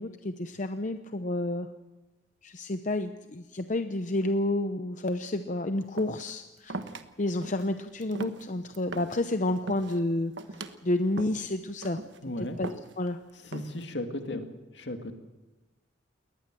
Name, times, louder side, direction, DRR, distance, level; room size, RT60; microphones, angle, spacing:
voice 1, 0.0-1.7 2.4-6.8 7.2-10.3 10.8-12.0 12.4-13.2 14.3-14.4, left 1 dB, 40° left, 9 dB, 0.8 m, -30 dB
sound 1, 6.0-6.3 6.7-7.0 7.4-7.7 8.0-9.2 9.6-10.0 10.4-10.8 11.2-11.5 11.8-12.2 12.6-13.1 13.5-13.9, right 2 dB, 70° right, 1.3 m, -39 dB
voice 2, 12.2-12.6 13.4-15.1, left 1 dB, 65° left, 6 dB, 2.3 m, -36 dB
22.0 x 19.0 x 7.6 m, 1.1 s
head